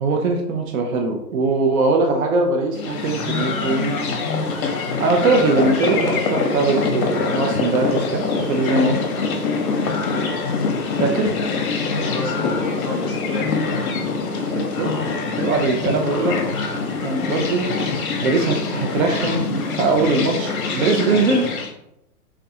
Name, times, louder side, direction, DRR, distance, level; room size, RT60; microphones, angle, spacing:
voice 1, 0.0-4.0 5.0-9.0 11.0-11.3 14.5-14.9 15.4-16.4 17.0-17.7 18.2-21.5, right 3 dB, 60° right, 3 dB, 0.5 m, -21 dB
sound 1, 2.7-21.7, left 4 dB, 60° left, 0.7 m, -24 dB
voice 2, 11.8-14.1, left 1 dB, 20° left, -7 dB, 0.5 m, -32 dB
2.4 x 2.2 x 2.7 m, 0.83 s
hypercardioid pair, 140°, 48 cm